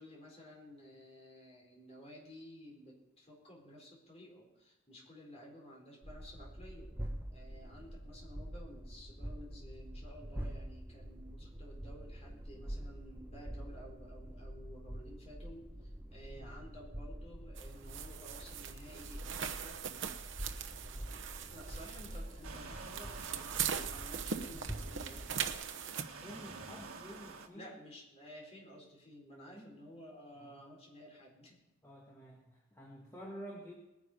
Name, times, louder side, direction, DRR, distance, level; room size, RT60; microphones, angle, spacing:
voice 1, 0.0-6.9 7.3-19.8 21.5-25.3 27.5-31.6, equal, 30° left, -2 dB, 4.4 m, -54 dB
sound 1, 6.0-25.6, right 1 dB, 10° right, 1.2 m, -46 dB
sound 2, 17.6-26.0, right 8 dB, 60° right, 0.9 m, -41 dB
sound 3, 22.4-27.5, right 4 dB, 90° right, 1.6 m, -50 dB
voice 2, 26.1-27.7 29.5-29.8 30.4-30.5 31.8-33.7, equal, 15° left, -3 dB, 1.8 m, -50 dB
20.0 x 9.8 x 5.2 m, 0.95 s
head